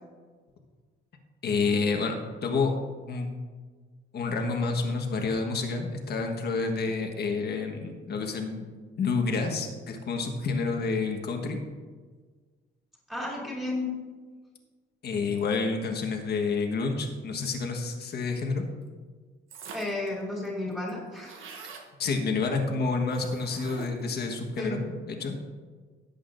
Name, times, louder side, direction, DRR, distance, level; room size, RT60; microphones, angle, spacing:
voice 1, 1.4-2.1 2.4-2.7 3.0-3.3 4.1-8.7 9.0-11.6 15.0-18.6 22.0-24.8 25.1-25.3, left 4 dB, 50° left, 3 dB, 1.5 m, -29 dB
voice 2, 13.1-13.9 19.7-21.5 24.6-24.8, left 2 dB, ahead, -5 dB, 3.0 m, -33 dB
sound 1, 19.5-20.1 20.4-20.5 20.7-21.9 23.1-24.1, right 4 dB, 80° right, 1.4 m, -44 dB
17.0 x 8.3 x 2.6 m, 1.5 s
cardioid pair, 155°, 20 cm